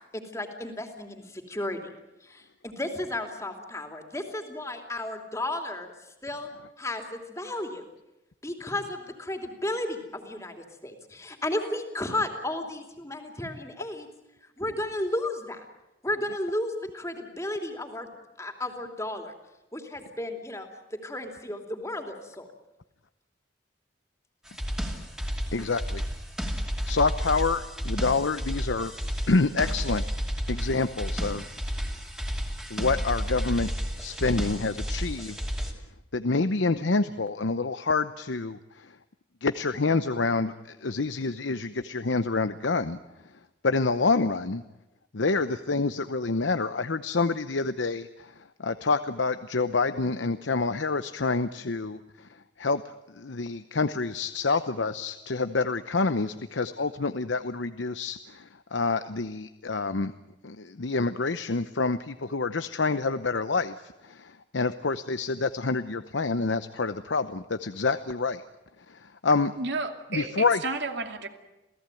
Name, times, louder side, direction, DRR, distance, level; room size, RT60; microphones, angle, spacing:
voice 1, 0.1-1.8 2.2-6.5 6.8-7.9 8.4-14.1 14.4-15.6 16.0-18.1 18.4-19.3 19.7-22.5, left 1 dB, 15° left, 4 dB, 2.9 m, -33 dB
sound 1, 24.5-35.7, equal, 5° right, 2.6 m, -32 dB
voice 2, 25.5-26.0 26.9-28.9 29.3-30.0 30.5-31.4 32.7-33.7 34.0-35.4 36.1-38.9 39.4-43.0 43.6-44.6 45.1-48.3 48.6-52.3 52.6-52.8 53.2-60.1 60.4-68.4 68.9-69.5 70.1-70.6, left 3 dB, 80° left, 11 dB, 0.8 m, -27 dB
voice 3, 69.6-71.3, right 3 dB, 65° right, 5 dB, 2.5 m, -32 dB
28.0 x 17.5 x 9.2 m, 0.97 s
head